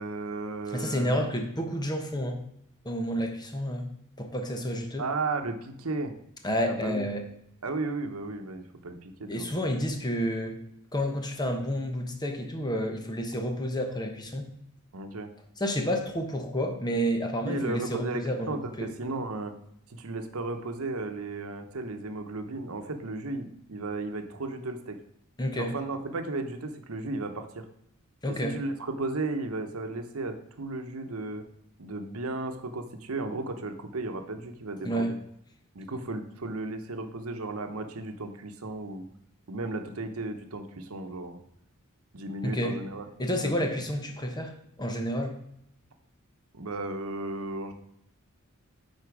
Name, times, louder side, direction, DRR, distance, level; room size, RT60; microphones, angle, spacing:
voice 1, 0.0-1.4 5.0-6.1 6.7-7.1 7.6-9.7 14.9-15.3 17.5-19.5 19.9-25.0 25.5-27.6 28.4-31.4 31.8-35.1 35.7-39.0 39.5-41.4 42.1-43.1 43.4-43.7 46.5-47.7, right 2 dB, 90° right, 6 dB, 0.9 m, -34 dB
voice 2, 0.7-2.4 2.8-3.9 4.2-5.0 6.4-7.2 9.3-10.6 10.9-14.5 15.6-18.9 25.4-25.7 28.2-28.5 34.8-35.1 42.4-42.7 43.2-44.5 44.8-45.4, equal, 20° left, 4 dB, 1.0 m, -30 dB
9.7 x 4.3 x 4.8 m, 0.76 s
head